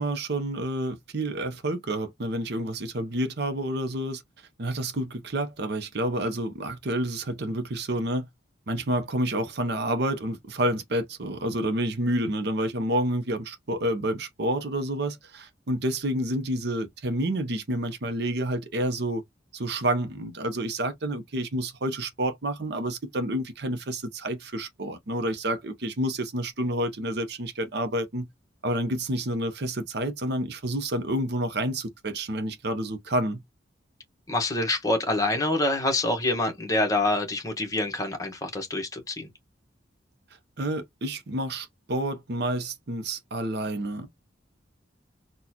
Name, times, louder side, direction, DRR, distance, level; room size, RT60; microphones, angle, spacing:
voice 1, 0.0-4.2 4.6-8.3 8.7-19.2 19.5-28.3 28.6-33.4 40.6-44.1, right 1 dB, 60° right, 0.8 m, -29 dB
voice 2, 34.3-39.3, left 2 dB, 20° left, 1.2 m, -26 dB
4.0 x 2.4 x 2.9 m
head